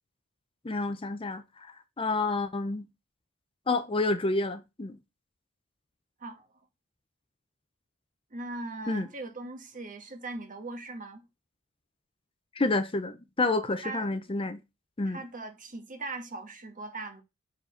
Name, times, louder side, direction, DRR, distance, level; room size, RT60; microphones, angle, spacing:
voice 1, 0.6-2.9 3.7-5.0 8.9-9.1 12.6-14.6 15.0-15.2, left 2 dB, 25° left, 0.6 m, -29 dB
voice 2, 8.3-11.2 13.8-14.2 15.1-17.2, right 2 dB, 40° right, 1.4 m, -40 dB
6.6 x 5.0 x 5.0 m
head